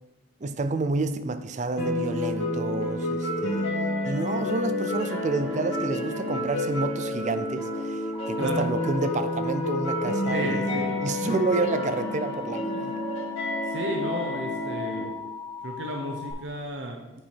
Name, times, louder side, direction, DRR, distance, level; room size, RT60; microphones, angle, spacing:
voice 1, 0.4-3.7 4.0-13.0, right 3 dB, 35° right, 0.4 m, -30 dB
sound 1, 1.8-15.0, left 1 dB, 90° left, 2.0 m, -29 dB
Alarm, 8.1-16.3, left 5 dB, 25° left, 2.4 m, -39 dB
voice 2, 10.3-11.0 12.7-12.8 13.6-15.1 15.6-17.2, right 1 dB, 60° right, 0.8 m, -33 dB
8.8 x 4.7 x 4.5 m
head